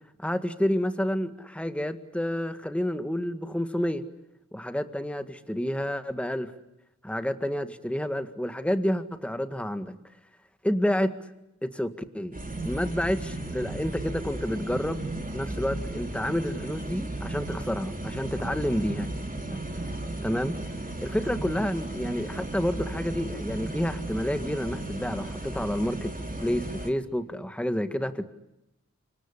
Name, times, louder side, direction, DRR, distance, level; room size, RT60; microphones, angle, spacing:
voice 1, 0.2-4.0 4.5-6.5 7.0-10.0 10.6-11.3 11.6-12.3 12.6-19.1 19.5-19.9 20.2-20.5 21.0-26.1 26.4-28.2, equal, 5° left, 9 dB, 1.8 m, -29 dB
sound 1, 12.3-26.9, right 2 dB, 25° right, 3.2 m, -35 dB
26.5 x 23.0 x 10.0 m, 0.87 s
wide cardioid pair, 45°, 30 cm